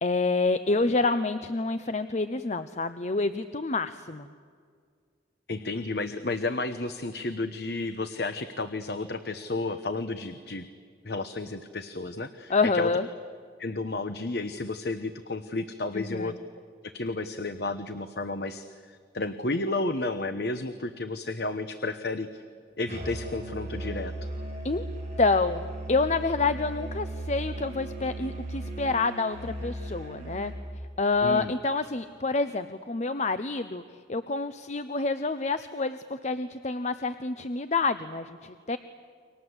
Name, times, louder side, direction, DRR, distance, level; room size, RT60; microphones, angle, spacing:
voice 1, 0.0-4.3 12.5-13.1 15.9-16.4 24.6-24.8 25.2-30.5 31.0-33.8 34.1-38.8, left 3 dB, 40° left, 11 dB, 0.7 m, -28 dB
voice 2, 5.5-10.7 11.0-12.9 13.6-16.3 16.8-22.4 22.8-24.3 31.2-31.5, left 2 dB, 60° left, 10 dB, 1.0 m, -32 dB
Musical instrument, 22.9-30.7, right 1 dB, 40° right, 5.7 m, -37 dB
30.0 x 24.5 x 8.0 m, 2.1 s
head